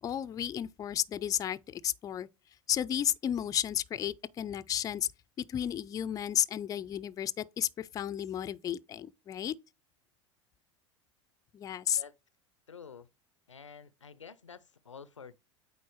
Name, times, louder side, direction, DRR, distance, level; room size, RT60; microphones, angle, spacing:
voice 1, 0.0-2.3 2.7-5.1 5.5-9.6 11.5-12.0, left 10 dB, 25° left, 0.4 m, -33 dB
voice 2, 12.7-13.1 13.5-15.3, left 6 dB, 90° left, 0.4 m, -49 dB
8.4 x 4.0 x 3.0 m
figure-of-eight pair, 80°, 15 cm